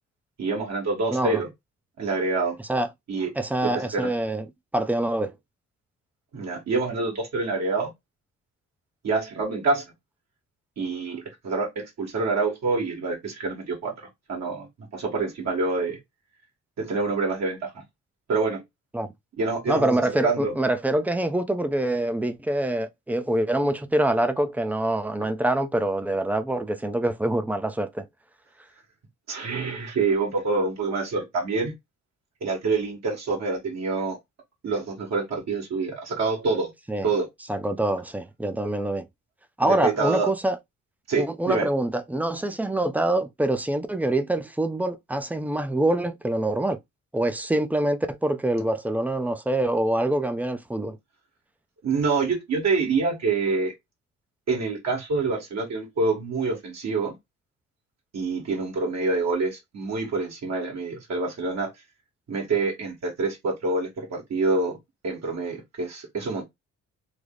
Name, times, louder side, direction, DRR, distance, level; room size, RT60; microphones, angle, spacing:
voice 1, 0.4-1.5 2.0-2.6 3.1-3.3 3.6-4.1 6.3-7.9 9.0-9.8 10.8-16.0 16.8-17.8 18.3-18.6 19.4-20.5 29.3-31.7 32.4-34.2 34.6-36.7 37.0-37.3 39.6-40.3 41.1-41.7 51.8-53.7 54.5-57.2 58.1-61.7 62.3-64.8 65.0-66.4, right 3 dB, 60° right, 1.5 m, -26 dB
voice 2, 1.1-1.4 2.7-2.9 3.4-4.4 4.7-5.3 18.9-19.1 19.7-28.1 36.9-37.1 37.5-39.1 39.6-40.6 41.2-46.8 47.1-51.0, right 1 dB, 5° right, 0.4 m, -25 dB
3.3 x 2.0 x 3.6 m
cardioid pair, 90°, 30 cm